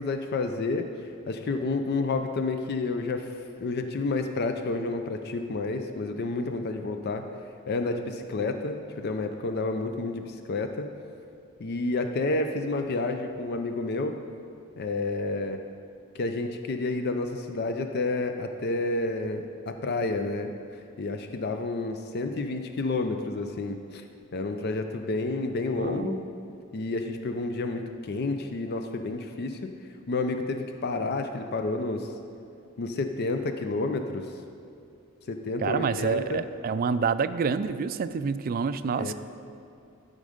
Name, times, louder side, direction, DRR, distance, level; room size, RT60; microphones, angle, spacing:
voice 1, 0.0-3.3 3.6-7.2 7.7-10.9 11.6-14.2 14.8-15.6 16.1-20.5 21.0-24.0 24.3-26.2 26.7-29.6 30.1-32.1 32.8-34.3 35.3-36.4 39.0-39.1, left 3 dB, 50° left, 6 dB, 0.5 m, -30 dB
voice 2, 25.8-26.2 35.6-39.1, right 5 dB, 45° right, 12 dB, 0.3 m, -28 dB
12.0 x 5.2 x 5.0 m, 2.5 s
head